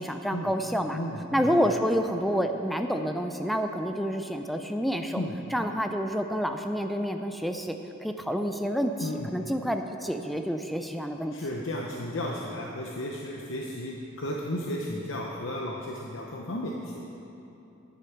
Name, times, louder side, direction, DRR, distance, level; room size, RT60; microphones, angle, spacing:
voice 1, 0.0-1.0 1.3-5.2 5.5-7.8 8.0-11.3, equal, ahead, 5 dB, 0.4 m, -28 dB
voice 2, 0.9-1.6 5.2-5.3 9.0-9.3 11.3-16.7, left 1 dB, 70° left, -1 dB, 0.8 m, -34 dB
10.5 x 8.3 x 5.8 m, 3.0 s
head